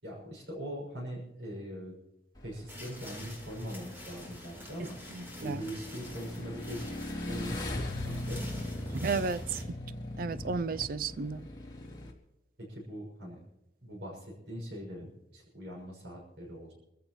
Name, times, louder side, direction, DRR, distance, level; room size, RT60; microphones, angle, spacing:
voice 1, 0.0-1.9 2.4-5.0 5.4-8.5 12.6-13.4 13.8-16.7, equal, 80° right, 6.3 m, -41 dB
Motorcycle / Engine, 2.4-12.1, left 1 dB, 25° left, 2.5 m, -40 dB
sound 1, 2.7-9.6, equal, 15° right, 3.7 m, -47 dB
voice 2, 5.1-5.6 8.9-9.6 10.2-11.5, right 4 dB, 50° right, 0.4 m, -33 dB
26.0 x 15.0 x 3.1 m
head